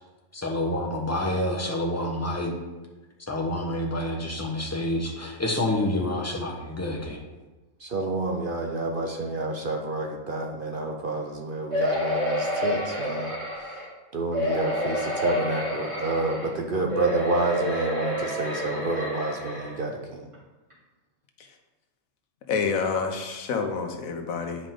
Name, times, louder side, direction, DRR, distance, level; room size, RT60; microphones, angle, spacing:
voice 1, 0.3-2.5 3.3-7.2, left 1 dB, 15° left, -1 dB, 1.0 m, -28 dB
voice 2, 7.8-13.3 14.1-20.3, right 2 dB, 50° right, 1 dB, 0.8 m, -29 dB
sound 1, 11.7-13.9 14.3-16.5 16.9-19.8 20.3-20.4 20.7-20.8, equal, 20° right, 2.6 m, -28 dB
voice 3, 22.5-24.7, left 5 dB, 85° left, 5 dB, 1.3 m, -28 dB
9.4 x 5.1 x 3.8 m, 1.2 s
omnidirectional pair, 1.4 m